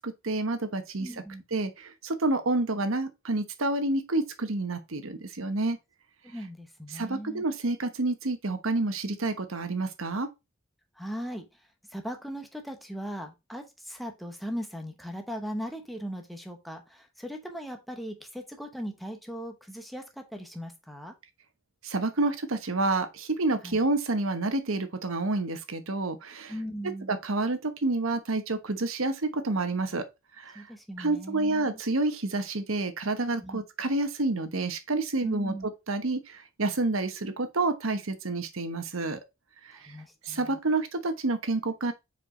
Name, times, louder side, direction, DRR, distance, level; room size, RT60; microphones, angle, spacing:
voice 1, 0.0-1.1 1.5-5.8 6.9-10.3 21.8-26.5 27.1-30.0 30.4-30.5 31.0-35.5 35.9-39.2 40.2-41.9, right 2 dB, 75° right, 1.1 m, -29 dB
voice 2, 1.0-1.4 6.2-7.4 11.0-11.5 11.9-21.1 23.6-23.8 26.5-27.2 30.5-31.8 33.4-33.6 35.2-35.7 39.7-40.6, equal, ahead, 1.0 m, -39 dB
4.8 x 4.8 x 5.0 m
head